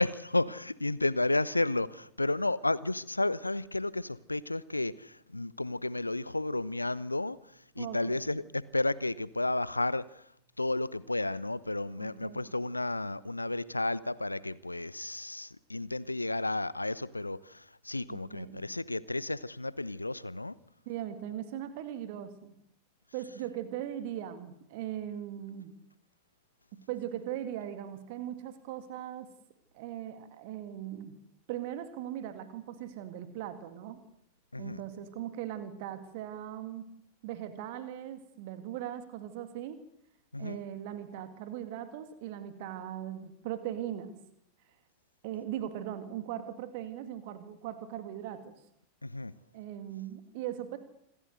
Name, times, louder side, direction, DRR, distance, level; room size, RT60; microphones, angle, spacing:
voice 1, 0.0-7.4 7.8-10.2 10.6-20.6 34.5-34.8 40.3-40.6 49.0-49.3, left 2 dB, 85° left, 0.7 m, -32 dB
voice 2, 7.8-8.4 12.0-12.5 18.1-18.6 20.9-22.6 23.1-25.7 26.9-29.3 29.7-31.2 31.5-34.0 34.6-36.9 37.2-39.8 40.4-44.1 45.2-48.5 49.5-50.8, right 11 dB, 50° right, 2.1 m, -39 dB
26.5 x 15.0 x 8.0 m
figure-of-eight pair, 90°, 0 cm